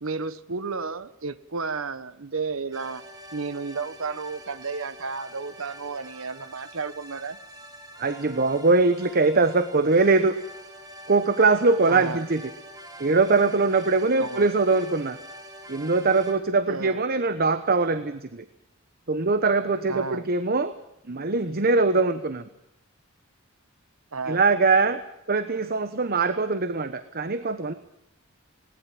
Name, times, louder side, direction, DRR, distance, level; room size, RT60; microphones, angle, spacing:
voice 1, 0.0-3.0 3.3-7.4 11.9-12.2 14.2-14.5 16.7-17.0 19.9-20.2 24.1-24.4, right 4 dB, 75° right, 14 dB, 1.1 m, -32 dB
sound 1, 2.7-16.3, equal, 20° right, 3.2 m, -45 dB
voice 2, 8.0-10.4 11.1-12.4 13.0-15.2 15.7-18.4 19.1-20.7 21.1-22.5 24.3-25.0 25.3-27.7, right 3 dB, 45° right, 11 dB, 1.1 m, -22 dB
20.0 x 19.0 x 7.6 m, 0.84 s
head